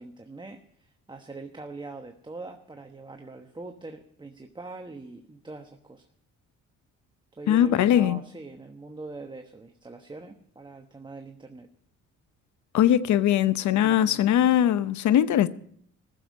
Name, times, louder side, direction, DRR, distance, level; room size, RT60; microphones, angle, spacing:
voice 1, 0.0-6.0 7.3-11.7 13.8-14.3, right 3 dB, 15° right, 1.1 m, -42 dB
voice 2, 7.5-8.2 12.7-15.5, left 11 dB, 70° left, 0.8 m, -21 dB
15.5 x 7.1 x 8.2 m
cardioid pair, 90°, 30 cm